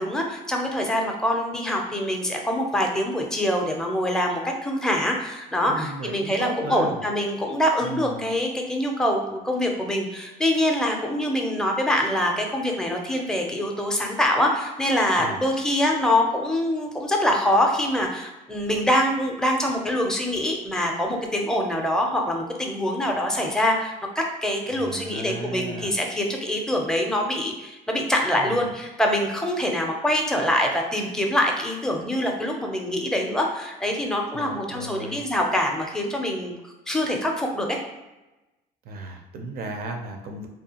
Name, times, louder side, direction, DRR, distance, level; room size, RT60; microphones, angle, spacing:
voice 1, 0.0-36.5 36.9-37.8, left 1 dB, 5° left, 1 dB, 0.4 m, -24 dB
voice 2, 5.7-7.0 7.8-8.3 15.2-15.4 24.7-25.9 28.3-28.7 34.3-35.2 38.8-40.5, right 2 dB, 65° right, 3 dB, 0.5 m, -35 dB
2.7 x 2.4 x 2.8 m, 1.1 s
cardioid pair, 110°, 17 cm